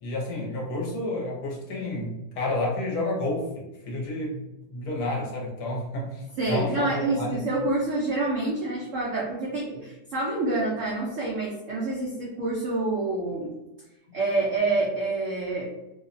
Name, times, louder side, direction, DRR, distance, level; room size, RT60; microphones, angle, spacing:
voice 1, 0.0-4.4 4.7-7.4, left 2 dB, 65° left, -3 dB, 1.1 m, -30 dB
voice 2, 6.4-13.5 14.1-15.7, right 2 dB, 85° right, -4 dB, 0.6 m, -27 dB
2.9 x 2.0 x 2.5 m, 0.97 s
omnidirectional pair, 1.9 m